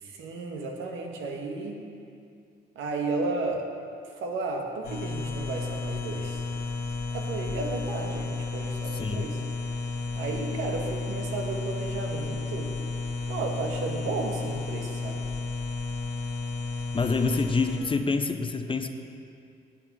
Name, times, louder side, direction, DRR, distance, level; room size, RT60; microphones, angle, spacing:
voice 1, 0.0-1.8 2.7-3.7 4.0-6.4 7.1-9.4 10.1-12.7 13.3-15.2, right 3 dB, 80° right, 2 dB, 1.4 m, -33 dB
sound 1, 4.8-17.8, left 3 dB, 90° left, 2.0 m, -32 dB
voice 2, 8.9-9.3 16.9-18.9, left 4 dB, 25° left, 7 dB, 0.7 m, -27 dB
9.9 x 8.2 x 6.1 m, 2.4 s
cardioid pair, 90°, 20 cm